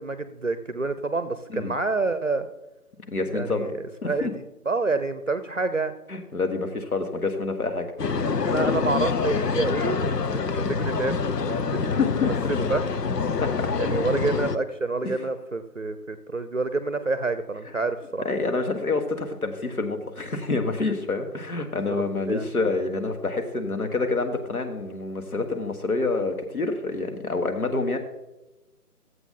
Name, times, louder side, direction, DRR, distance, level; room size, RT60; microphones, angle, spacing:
voice 1, 0.0-2.5 3.3-5.9 8.4-11.1 11.7-11.8 12.2-12.9 13.8-18.2 21.9-22.4, right 3 dB, 50° right, 11 dB, 0.6 m, -28 dB
voice 2, 3.1-3.7 4.0-4.3 6.1-7.9 11.8-12.3 13.4-13.7 15.0-15.2 18.2-28.0, left 3 dB, 65° left, 5 dB, 1.5 m, -27 dB
sound 1, 8.0-14.6, left 5 dB, 90° left, 0.8 m, -26 dB
13.5 x 8.0 x 3.8 m, 1.0 s
figure-of-eight pair, 180°, 47 cm